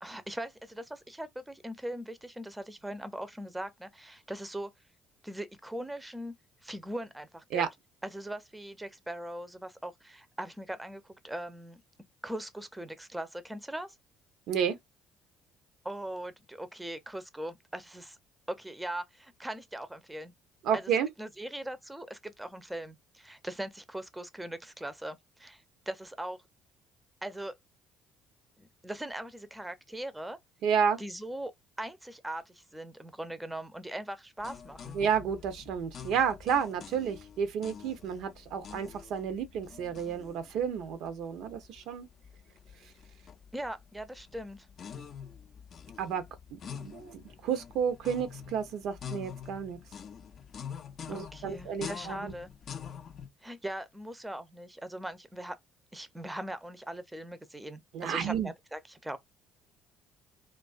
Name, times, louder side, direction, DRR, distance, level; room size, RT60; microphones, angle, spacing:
voice 1, 0.0-4.7 5.2-6.3 6.6-7.6 8.0-11.8 12.2-13.9 15.8-18.2 18.5-20.3 20.7-20.8 21.2-26.4 27.2-27.5 28.6-30.4 31.0-31.5 31.8-35.0 43.5-44.7 51.1-52.5 53.4-55.6 55.9-59.2, right 1 dB, 10° right, 0.5 m, -40 dB
voice 2, 20.6-21.1 30.6-31.0 34.9-42.1 46.0-46.2 46.5-49.8 51.1-52.3 57.9-58.5, right 7 dB, 65° right, 0.5 m, -31 dB
sound 1, 34.4-53.3, left 7 dB, 50° left, 0.4 m, -46 dB
2.3 x 2.3 x 2.3 m
hypercardioid pair, 55°, 0 cm